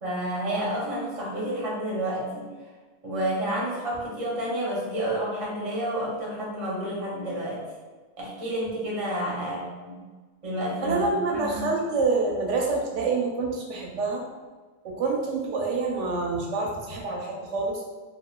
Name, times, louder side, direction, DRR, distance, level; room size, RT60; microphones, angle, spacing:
voice 1, 0.0-2.5 3.0-7.6 8.2-10.0 10.4-11.0 11.3-11.6, right 1 dB, 30° right, -6 dB, 0.8 m, -30 dB
voice 2, 10.8-14.2 14.8-17.8, right 3 dB, 75° right, -1 dB, 0.9 m, -27 dB
2.8 x 2.6 x 2.2 m, 1.4 s
omnidirectional pair, 1.3 m